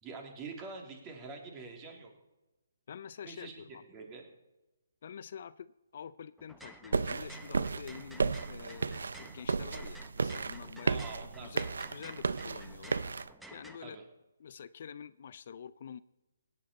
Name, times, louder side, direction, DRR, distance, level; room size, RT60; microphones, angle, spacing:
voice 1, 0.0-2.1 3.2-4.3 10.9-11.6 13.8-14.0, right 4 dB, 20° right, 2 dB, 2.8 m, -46 dB
voice 2, 2.9-3.8 5.0-13.0 13.5-14.0 14.4-16.0, left 7 dB, 55° left, 17 dB, 0.4 m, -47 dB
sound 1, 6.4-13.8, right 1 dB, ahead, 0.9 m, -53 dB
sound 2, 6.9-13.3, right 4 dB, 75° right, 0.5 m, -34 dB
17.0 x 10.0 x 4.2 m, 1.0 s
hypercardioid pair, 150°, 0 cm